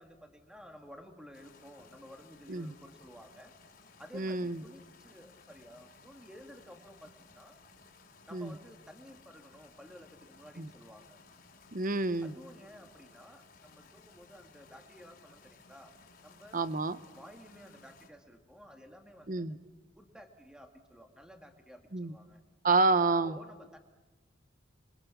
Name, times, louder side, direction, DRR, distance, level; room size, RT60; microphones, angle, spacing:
voice 1, 0.0-3.5 4.0-7.6 8.3-11.2 12.2-15.9 16.2-16.7 17.2-19.5 20.0-22.4 23.2-23.8, equal, 5° right, 4 dB, 2.1 m, -53 dB
sound 1, 1.3-18.1, left 4 dB, 50° left, 3.4 m, -59 dB
voice 2, 4.1-4.6 8.3-8.5 10.6-10.7 11.7-12.3 16.5-17.0 19.3-19.6 21.9-22.1 22.6-23.4, right 3 dB, 45° right, 13 dB, 0.9 m, -28 dB
28.0 x 23.0 x 7.2 m, 1.1 s
head